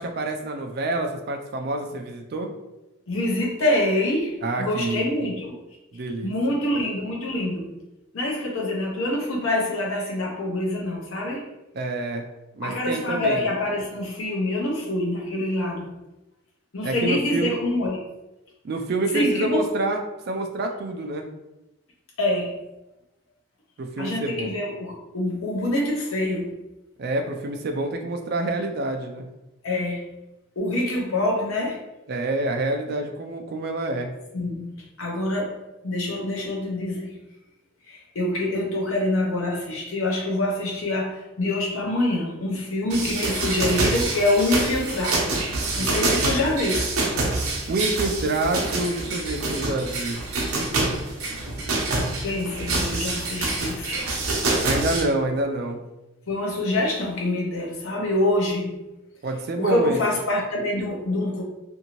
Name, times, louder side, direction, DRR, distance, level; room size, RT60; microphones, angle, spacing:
voice 1, 0.0-2.5 4.4-5.1 5.9-6.3 11.7-12.2 12.5-13.5 16.8-17.6 18.6-20.0 20.3-21.3 23.8-24.5 27.0-29.3 32.1-34.1 47.7-50.2 54.6-55.8 59.2-60.0, right 2 dB, 45° right, 4 dB, 0.3 m, -27 dB
voice 2, 3.1-4.3 4.6-5.5 6.2-7.7 8.1-11.4 12.6-16.0 16.7-18.0 19.1-19.6 22.2-22.6 24.0-26.5 29.6-30.1 30.6-31.8 34.3-35.6 35.8-37.2 37.9-45.4 45.8-46.9 52.2-54.0 56.3-58.8 59.6-61.4, left 1 dB, 70° left, -2 dB, 0.7 m, -25 dB
sound 1, 42.9-55.0, right 2 dB, 80° right, 0.7 m, -26 dB
2.6 x 2.6 x 2.9 m, 0.96 s
head